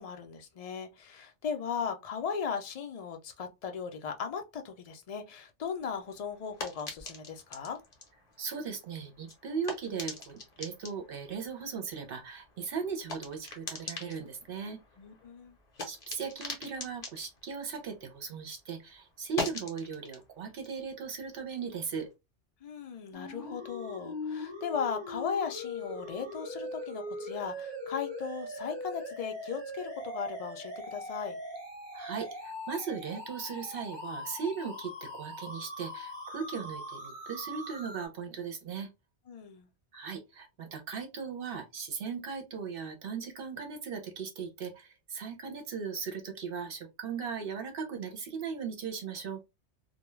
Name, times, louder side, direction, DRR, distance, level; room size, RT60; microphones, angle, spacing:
voice 1, 0.0-7.8 15.0-15.6 22.6-31.4 39.3-39.7, left 6 dB, 65° left, 0.3 m, -37 dB
sound 1, 5.8-18.5 18.8-22.1, left 3 dB, 45° left, 0.7 m, -44 dB
voice 2, 8.4-14.8 15.8-22.1 31.9-38.9 39.9-49.4, right 6 dB, 60° right, 0.8 m, -38 dB
sound 2, 23.1-38.1, left 1 dB, 25° right, 0.7 m, -41 dB
2.3 x 2.1 x 3.0 m
omnidirectional pair, 1.2 m